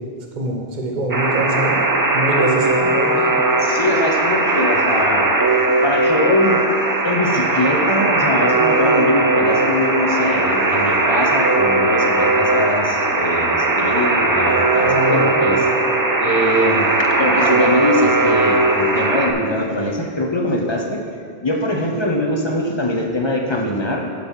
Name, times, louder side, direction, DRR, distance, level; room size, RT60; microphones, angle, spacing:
voice 1, 0.3-1.8 2.1-3.4 14.8-15.7, right 1 dB, 45° right, 0 dB, 1.1 m, -24 dB
Alarm, 1.1-19.3, right 2 dB, 25° right, 0.5 m, -18 dB
voice 2, 3.6-5.3 5.8-6.7 7.0-15.7 16.2-21.0 21.4-24.1, left 1 dB, 30° left, 2 dB, 0.6 m, -22 dB
7.1 x 5.6 x 6.3 m, 2.2 s
omnidirectional pair, 1.1 m